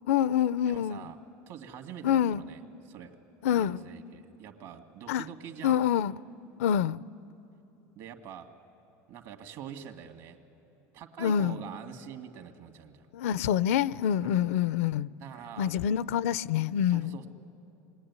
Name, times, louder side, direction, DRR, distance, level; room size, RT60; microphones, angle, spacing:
voice 1, 0.1-1.1 2.0-2.4 3.4-3.8 5.1-5.3 5.6-6.1 6.6-7.0 11.2-11.6 13.1-15.1 15.6-17.2, left 9 dB, 90° left, 0.5 m, -26 dB
voice 2, 0.7-1.2 1.5-2.6 2.9-3.2 3.5-5.8 8.0-8.6 9.1-10.4 10.9-13.1 14.2-14.5 15.2-15.7 16.9-17.3, right 8 dB, 60° right, 2.1 m, -45 dB
27.0 x 21.5 x 9.6 m
supercardioid pair, 120°, 7 cm